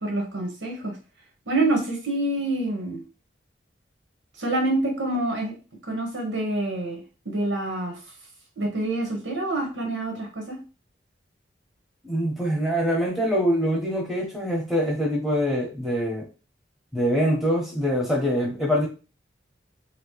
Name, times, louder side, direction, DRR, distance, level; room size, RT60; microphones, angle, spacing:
voice 1, 0.0-0.9 1.5-3.0 4.4-5.5 5.9-7.0 7.2-8.0 8.6-10.6, right 2 dB, 90° right, 1.1 m, -26 dB
voice 2, 12.0-16.3 16.9-18.9, equal, ahead, 0.9 m, -24 dB
2.9 x 2.8 x 3.0 m
head